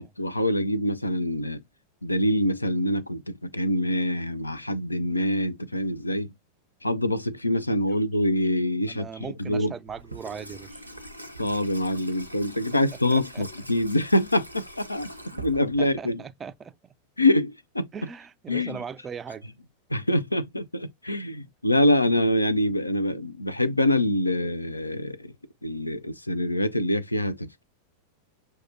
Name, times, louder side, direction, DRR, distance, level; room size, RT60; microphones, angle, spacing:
voice 1, 0.0-1.6 2.0-6.3 6.8-9.1 9.4-9.7 11.4-15.1 15.4-16.2 17.2-17.9 18.5-18.8 19.9-25.3 25.6-27.6, left 1 dB, 85° left, 0.4 m, -25 dB
voice 2, 8.9-10.8 13.1-13.4 15.8-16.8 17.9-19.5, right 6 dB, 20° right, 0.4 m, -39 dB
Water tap faucet / Sink (filling or washing), 9.9-16.1, right 1 dB, 90° right, 0.7 m, -43 dB
6.2 x 2.2 x 2.7 m
figure-of-eight pair, 90°, 0 cm